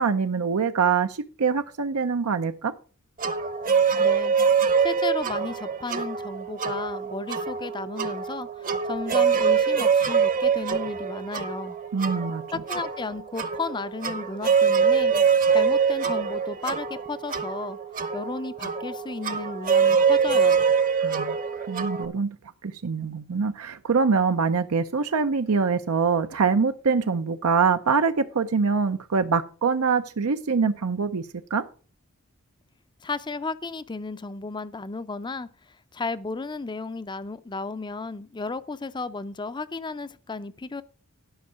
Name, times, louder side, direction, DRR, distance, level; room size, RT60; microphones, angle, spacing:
voice 1, 0.0-2.7 11.9-12.4 21.0-21.4 21.7-22.4 22.6-31.2 31.5-31.6, right 5 dB, 80° right, 0.6 m, -24 dB
sound 1, 3.2-22.0, right 6 dB, 40° right, 0.9 m, -24 dB
voice 2, 4.0-4.3 4.8-11.8 12.5-15.1 15.5-17.8 18.1-20.6 33.0-35.5 35.9-40.8, left 3 dB, 20° left, 0.5 m, -34 dB
11.0 x 5.5 x 6.2 m
head